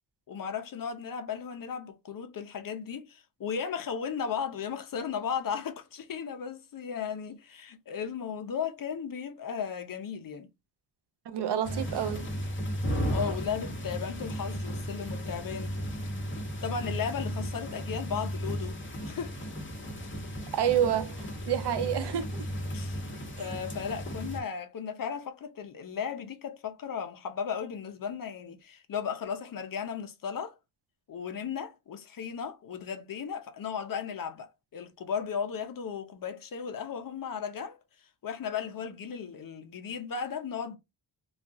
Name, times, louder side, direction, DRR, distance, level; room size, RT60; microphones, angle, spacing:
voice 1, 0.3-10.5 13.1-15.8 16.6-19.3 22.7-23.1 23.4-30.6 31.1-37.8 38.2-40.8, left 7 dB, 45° left, 0.7 m, -35 dB
voice 2, 11.3-12.3 20.5-22.5, right 9 dB, 60° right, 0.6 m, -29 dB
sound 1, 11.6-24.4, equal, 25° left, 1.0 m, -35 dB
3.1 x 2.3 x 2.6 m
cardioid pair, 120°, 46 cm